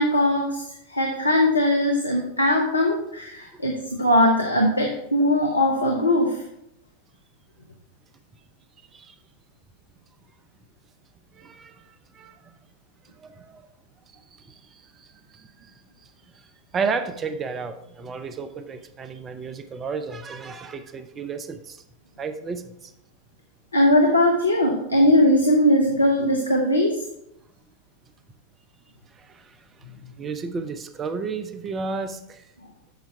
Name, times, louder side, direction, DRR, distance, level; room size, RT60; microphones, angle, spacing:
voice 1, 0.0-6.4 23.7-27.0 30.0-30.1, left 1 dB, 85° left, 1 dB, 0.9 m, -20 dB
voice 2, 11.3-11.8 12.1-12.4 13.2-13.6 14.5-15.1 15.3-15.5 16.7-21.8 22.2-22.9 29.2-29.6 30.2-32.4, right 5 dB, 20° right, 10 dB, 0.6 m, -32 dB
8.0 x 5.8 x 4.5 m, 0.81 s
figure-of-eight pair, 90°, 0 cm